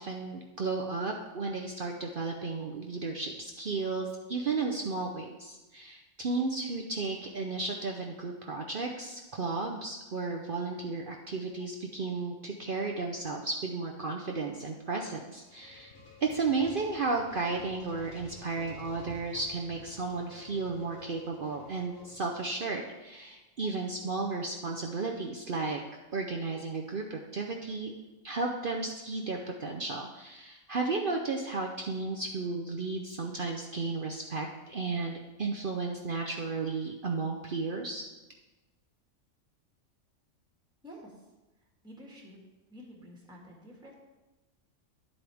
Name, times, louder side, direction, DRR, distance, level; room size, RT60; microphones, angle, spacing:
voice 1, 0.0-15.9 16.2-25.8 26.1-27.9 28.2-38.0, right 3 dB, 50° right, 1 dB, 0.8 m, -34 dB
sound 1, 15.1-22.8, left 3 dB, 80° left, 1.8 m, -52 dB
voice 2, 40.8-41.1 41.8-42.4 42.7-44.0, equal, 5° right, -2 dB, 1.8 m, -49 dB
11.5 x 8.0 x 3.5 m, 1.1 s
omnidirectional pair, 1.3 m